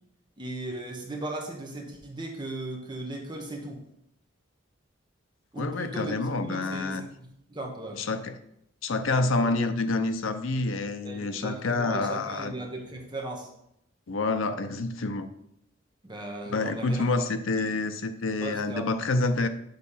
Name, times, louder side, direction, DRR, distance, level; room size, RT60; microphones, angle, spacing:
voice 1, 0.4-3.8 5.5-6.1 6.5-7.1 7.5-8.0 11.0-13.5 16.0-17.3 18.4-19.0, right 2 dB, 25° right, 1 dB, 1.0 m, -37 dB
voice 2, 5.6-7.0 8.0-8.4 8.8-12.5 14.1-15.3 16.5-19.5, left 3 dB, 85° left, 8 dB, 0.6 m, -28 dB
6.5 x 4.1 x 5.5 m, 0.74 s
head